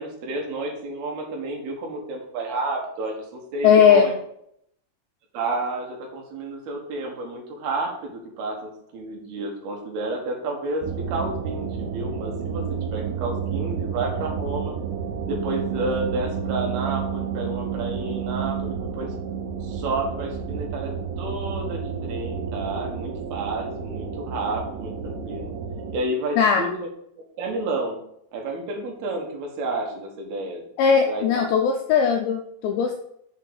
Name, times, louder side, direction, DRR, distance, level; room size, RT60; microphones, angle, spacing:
voice 1, 0.0-4.1 5.3-12.6 12.9-14.7 15.2-19.1 19.6-20.9 21.2-25.5 25.9-26.9 27.4-28.0 28.3-30.6 31.1-31.5, right 2 dB, 60° right, 1 dB, 3.1 m, -30 dB
voice 2, 3.6-4.1 26.4-26.7 30.8-33.0, left 7 dB, 80° left, 3 dB, 2.6 m, -18 dB
sound 1, 10.8-26.0, right 7 dB, 80° right, 3.2 m, -30 dB
7.4 x 5.7 x 7.0 m, 0.73 s
omnidirectional pair, 5.6 m